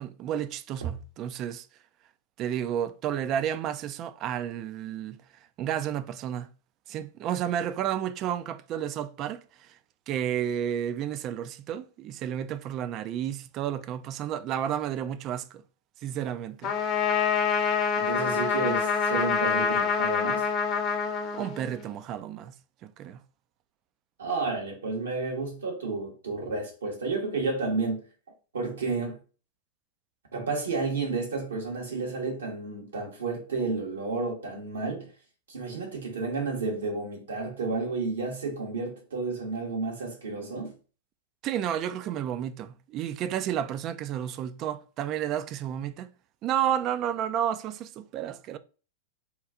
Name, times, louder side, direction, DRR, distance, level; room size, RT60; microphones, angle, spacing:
voice 1, 0.0-1.7 2.4-5.2 5.6-6.5 6.9-9.7 10.1-15.6 16.0-16.7 21.3-22.5 22.8-23.2 41.4-46.1 46.4-48.6, right 10 dB, 40° right, 0.3 m, -31 dB
Trumpet, 16.6-21.9, left 6 dB, 35° left, 0.7 m, -26 dB
voice 2, 17.9-20.5 24.2-28.0 28.5-29.2 30.3-35.1 35.5-40.7, right 3 dB, 80° right, 1.3 m, -31 dB
3.0 x 2.3 x 3.6 m
hypercardioid pair, 100°, 0 cm